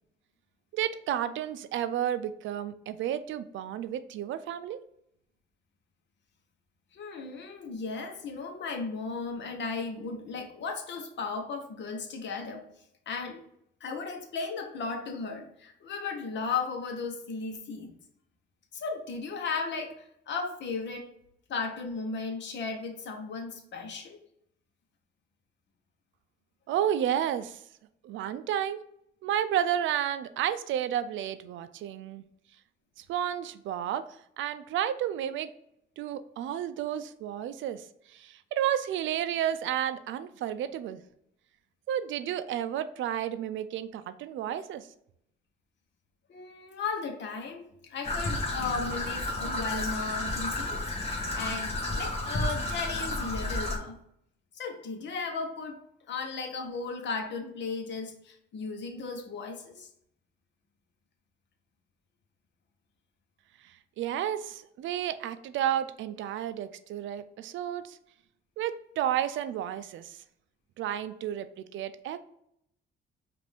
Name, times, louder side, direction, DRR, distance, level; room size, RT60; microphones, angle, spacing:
voice 1, 0.7-4.8 26.7-27.6 28.0-28.8 29.2-32.2 33.0-35.5 36.0-41.0 41.9-44.9 63.6-68.0 68.6-70.2 70.8-72.2, right 10 dB, 75° right, 12 dB, 0.4 m, -32 dB
voice 2, 6.9-12.6 13.1-13.4 13.8-17.9 18.7-21.1 21.5-24.2 46.3-53.9 54.5-55.8 56.1-59.9, left 4 dB, 65° left, 4 dB, 1.0 m, -35 dB
Traffic noise roadway noise / Trickle dribble, 48.0-53.8, left 2 dB, 30° left, 1.3 m, -32 dB
5.1 x 2.6 x 3.4 m, 0.74 s
cardioid pair, 90°, 20 cm